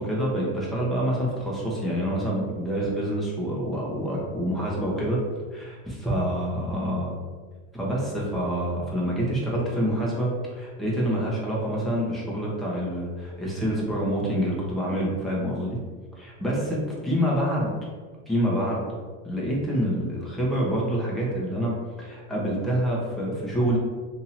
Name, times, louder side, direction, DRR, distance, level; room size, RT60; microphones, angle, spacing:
voice 1, 0.0-5.2 5.5-7.1 7.7-15.8 16.2-17.7 18.3-18.8 19.2-21.7 22.0-23.8, equal, ahead, -6 dB, 1.0 m, -27 dB
2.9 x 2.8 x 4.1 m, 1.5 s
supercardioid pair, 125°, 40 cm